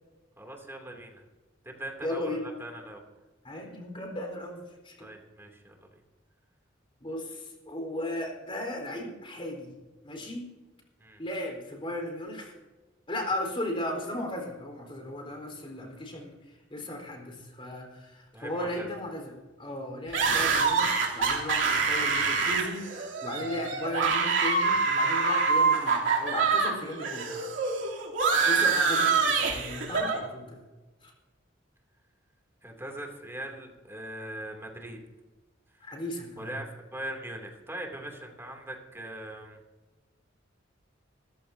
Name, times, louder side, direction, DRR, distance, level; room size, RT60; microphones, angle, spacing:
voice 1, 0.4-1.2 1.6-3.0 5.0-5.9 11.0-11.2 18.3-18.9 32.6-35.0 35.7-36.0 36.4-39.6, right 1 dB, 15° right, 1 dB, 2.7 m, -41 dB
voice 2, 2.0-2.5 3.4-5.1 7.0-9.7 10.0-10.5 11.2-12.5 13.1-16.3 16.7-27.3 28.5-30.6 31.0-31.1 35.8-36.5, left 1 dB, 30° left, 1 dB, 4.3 m, -36 dB
sound 1, 20.1-26.7 27.0-30.2, right 4 dB, 70° right, 3.1 m, -25 dB
25.0 x 14.5 x 2.8 m, 1.2 s
head